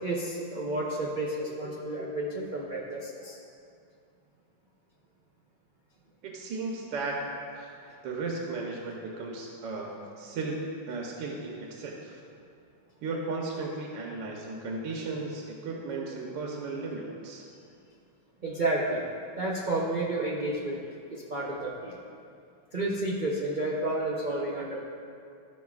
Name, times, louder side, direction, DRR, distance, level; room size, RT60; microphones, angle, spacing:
voice 1, 0.0-3.4 7.8-7.9 18.4-19.1 19.4-20.8 21.1-22.0 22.7-24.8, right 2 dB, 90° right, -5 dB, 0.4 m, -31 dB
voice 2, 6.2-7.7 8.0-12.2 13.0-17.4, right 3 dB, 75° right, -1 dB, 1.5 m, -35 dB
14.0 x 5.5 x 2.4 m, 2.4 s
omnidirectional pair, 2.1 m